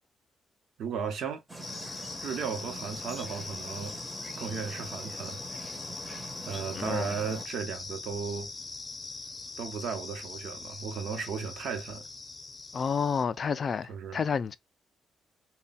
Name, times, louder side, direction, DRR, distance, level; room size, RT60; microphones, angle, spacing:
voice 1, 0.8-1.4 2.2-3.9 4.4-5.4 6.5-8.5 9.6-12.1 13.9-14.2, right 6 dB, 70° right, 0.8 m, -35 dB
sound 1, 1.5-7.5, right 2 dB, 10° right, 0.7 m, -44 dB
sound 2, 1.6-13.2, left 3 dB, 20° left, 0.7 m, -41 dB
voice 2, 6.7-7.1 12.7-14.6, left 6 dB, 45° left, 0.3 m, -30 dB
3.4 x 2.2 x 4.0 m
cardioid pair, 125°, 0 cm